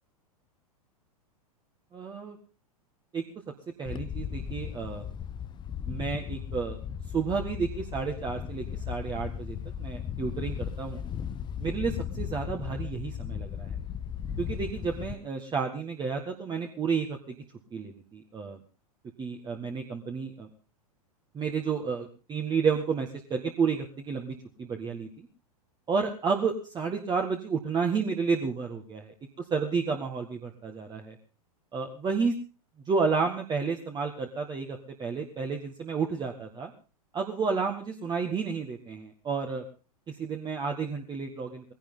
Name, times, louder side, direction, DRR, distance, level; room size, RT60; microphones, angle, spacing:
voice 1, 1.9-2.4 3.1-3.2 3.8-5.1 5.9-6.8 7.1-11.0 11.6-13.8 14.4-17.4 17.7-18.6 19.2-20.5 21.3-25.3 25.9-29.0 29.5-31.2 31.7-32.4 32.9-36.7 37.1-39.6 40.1-41.7, right 5 dB, 20° right, 3 dB, 1.8 m, -31 dB
Wind, 3.8-15.2, left 8 dB, 25° left, 0.9 m, -36 dB
19.0 x 16.5 x 3.9 m, 0.35 s
figure-of-eight pair, 95°, 20 cm